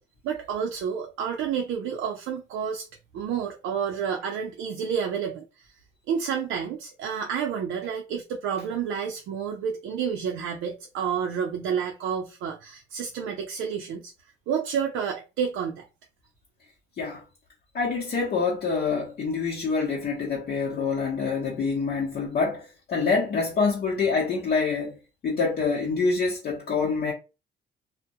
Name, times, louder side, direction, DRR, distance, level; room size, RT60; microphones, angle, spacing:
voice 1, 0.2-2.9 3.1-5.7 6.1-14.1 14.5-15.9, right 7 dB, 85° right, 0.5 m, -30 dB
voice 2, 17.7-25.0 25.2-27.1, left 4 dB, 50° left, 0.8 m, -26 dB
2.2 x 2.1 x 2.7 m
cardioid pair, 90°, 20 cm